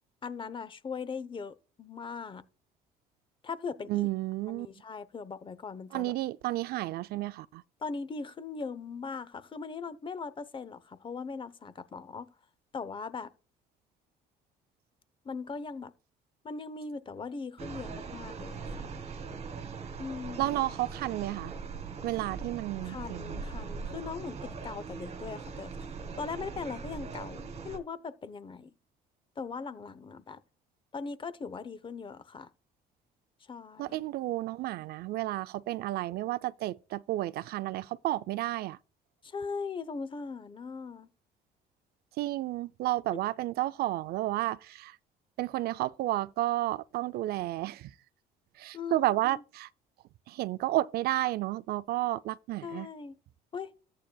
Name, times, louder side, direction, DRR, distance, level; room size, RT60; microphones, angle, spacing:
voice 1, 0.2-2.4 3.4-4.1 4.5-6.1 7.8-12.3 12.7-13.3 15.2-15.9 16.4-18.9 20.0-20.6 22.8-25.7 26.2-28.7 29.4-30.4 30.9-32.5 33.5-34.0 39.2-41.1 43.1-43.2 48.7-49.4 52.6-53.1 53.5-53.7, left 5 dB, 30° left, 0.8 m, -39 dB
voice 2, 3.9-4.7 5.9-7.6 20.4-21.5 22.0-23.4 33.8-38.8 42.2-45.0 45.4-47.9 48.6-49.7 50.3-52.9, right 16 dB, 70° right, 0.4 m, -31 dB
sound 1, 17.6-27.8, right 5 dB, 40° right, 1.8 m, -41 dB
13.5 x 8.5 x 2.3 m
cardioid pair, 110°, 17 cm